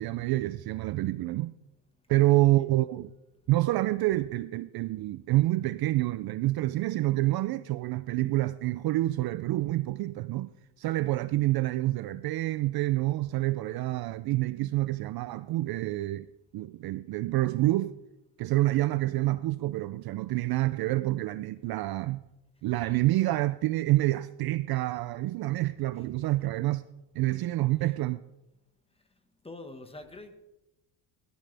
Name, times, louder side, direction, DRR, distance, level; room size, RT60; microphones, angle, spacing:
voice 1, 0.0-1.5 2.1-3.1 3.5-10.5 10.8-16.3 16.5-18.0 18.4-22.2 22.6-26.8 27.1-28.2, right 17 dB, 50° right, 0.5 m, -27 dB
voice 2, 2.1-2.7 26.0-26.1 26.4-26.5 27.8-27.9 29.4-30.3, left 2 dB, 10° left, 1.5 m, -46 dB
20.0 x 13.5 x 3.4 m
cardioid pair, 130°, 50 cm